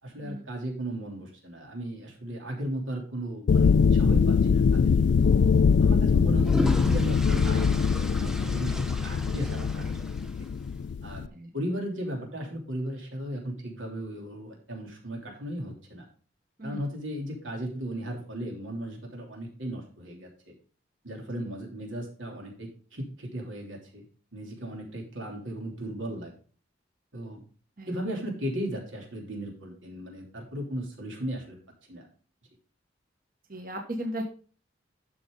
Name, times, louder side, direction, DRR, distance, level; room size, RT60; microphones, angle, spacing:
voice 1, 0.0-5.2 5.8-10.0 10.4-10.5 11.0-16.1 16.6-20.5 21.0-24.0 24.3-26.3 27.1-27.4 27.9-31.6 31.9-32.1, right 1 dB, 85° right, 1 dB, 3.1 m, -36 dB
sound 1, 3.5-11.3, left 5 dB, 65° left, 0.3 m, -22 dB
sound 2, 6.1-10.7, equal, 5° right, 0.6 m, -37 dB
voice 2, 33.5-34.2, right 1 dB, 45° right, 3 dB, 1.3 m, -35 dB
11.5 x 6.4 x 3.8 m, 0.40 s
head